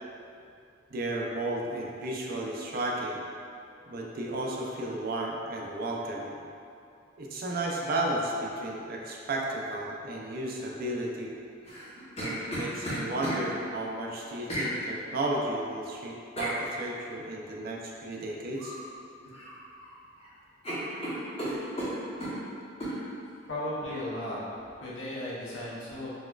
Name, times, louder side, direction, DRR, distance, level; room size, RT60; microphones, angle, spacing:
voice 1, 0.9-3.2 3.9-6.4 7.2-11.3 12.2-18.8, right 1 dB, 50° right, -2 dB, 0.4 m, -33 dB
sound 1, 11.6-13.4 14.5-14.7 16.4-16.6 18.6-18.8 19.2-19.9 20.2-20.3 20.6-22.4 22.8-23.0, right 1 dB, 35° left, 0.9 m, -34 dB
voice 2, 23.5-24.4 24.8-26.1, left 1 dB, 90° left, -8 dB, 0.8 m, -35 dB
4.1 x 2.3 x 2.3 m, 2.6 s
head